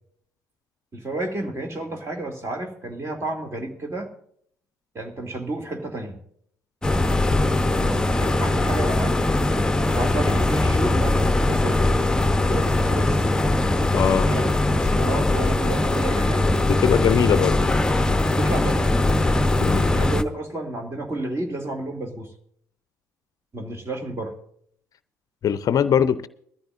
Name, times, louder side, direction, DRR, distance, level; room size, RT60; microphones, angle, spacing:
voice 1, 0.9-4.1 4.9-6.2 7.8-9.2 9.9-11.9 12.5-13.3 14.2-14.5 14.7-16.5 18.4-18.9 19.9-22.3 23.5-24.3, right 2 dB, 30° right, 2.7 m, -31 dB
sound 1, 6.8-20.2, left 2 dB, 10° left, 0.9 m, -21 dB
voice 2, 13.9-14.3 16.7-17.6 19.6-19.9 25.4-26.3, left 8 dB, 45° left, 0.6 m, -21 dB
21.5 x 14.0 x 2.6 m
figure-of-eight pair, 50°, 9 cm